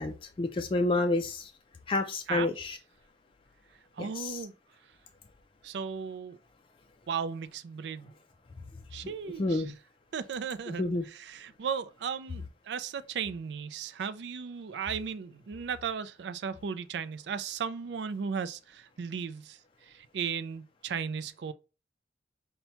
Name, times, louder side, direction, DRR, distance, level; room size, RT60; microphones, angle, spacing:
voice 1, 0.0-1.5 1.9-2.8 4.0-4.4 9.4-9.7 10.8-11.0, left 2 dB, 30° left, 0.3 m, -29 dB
voice 2, 4.0-4.5 5.6-6.4 7.1-8.1 8.9-9.7 10.1-21.5, right 6 dB, 80° right, 0.4 m, -36 dB
5.6 x 2.2 x 2.8 m
head